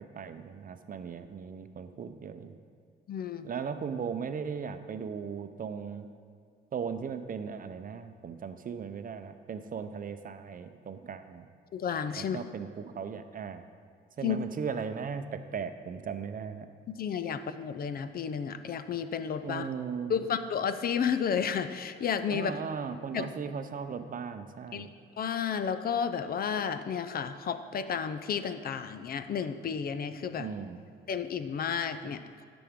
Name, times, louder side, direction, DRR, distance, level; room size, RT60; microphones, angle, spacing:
voice 1, 0.0-2.5 3.4-6.1 6.7-11.5 12.2-13.6 14.2-16.7 19.4-20.1 22.3-24.9 30.4-30.8, right 6 dB, 45° right, 9 dB, 0.6 m, -37 dB
voice 2, 3.1-3.5 11.7-12.4 14.2-14.4 17.0-19.7 20.1-22.6 23.1-23.3 24.7-24.9 25.2-30.5 31.1-32.2, left 7 dB, 50° left, 11 dB, 0.5 m, -32 dB
13.5 x 6.0 x 3.6 m, 2.1 s
cardioid pair, 90°, 20 cm